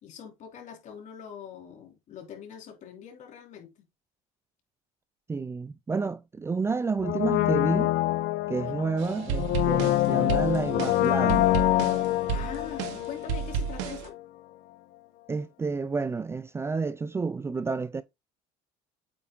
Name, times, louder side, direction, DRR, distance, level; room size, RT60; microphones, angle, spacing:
voice 1, 0.0-3.7 8.6-8.7 12.3-14.1, left 8 dB, 55° left, 3.2 m, -43 dB
voice 2, 5.3-8.0 8.5-11.5 15.3-18.0, right 4 dB, 15° right, 0.5 m, -30 dB
Brass instrument, 7.0-13.9 14.1-14.2, left 15 dB, 70° left, 0.7 m, -26 dB
sound 1, 9.0-14.1, right 7 dB, 90° right, 1.4 m, -32 dB
8.5 x 3.6 x 3.8 m
supercardioid pair, 110°, 16 cm